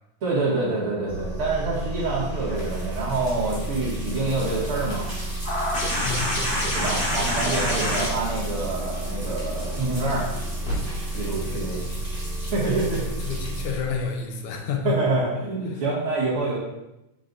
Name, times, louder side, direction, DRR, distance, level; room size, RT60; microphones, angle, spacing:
voice 1, 0.2-5.1 6.7-10.3 11.1-11.8 12.5-13.0 14.8-16.6, right 3 dB, 45° right, -7 dB, 2.7 m, -26 dB
sound 1, 1.1-14.0, right 1 dB, 50° left, 0.7 m, -32 dB
sound 2, 1.7-14.9, right 1 dB, 10° right, 1.7 m, -42 dB
sound 3, 5.4-10.7 12.1-12.2, left 1 dB, 25° left, 1.5 m, -28 dB
voice 2, 6.0-6.3 6.6-6.7 11.1-12.0 12.7-12.8 13.1-15.0 15.7-15.8, left 6 dB, 80° left, 2 dB, 2.3 m, -31 dB
7.6 x 6.3 x 2.7 m, 0.93 s
omnidirectional pair, 3.5 m